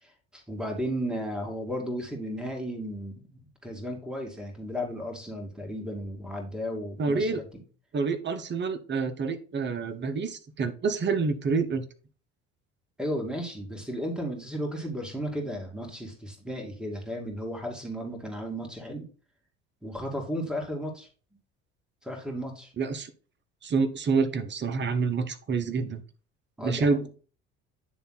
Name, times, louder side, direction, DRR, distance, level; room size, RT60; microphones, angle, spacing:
voice 1, 0.3-7.4 13.0-19.1 19.8-21.1 22.0-22.7 26.6-27.1, equal, 5° right, 2 dB, 2.4 m, -34 dB
voice 2, 7.0-7.4 7.9-11.9 22.8-23.1 23.6-26.0 26.6-27.1, right 4 dB, 35° right, 11 dB, 1.1 m, -27 dB
9.5 x 3.5 x 4.0 m, 0.38 s
supercardioid pair, 90°, 30 cm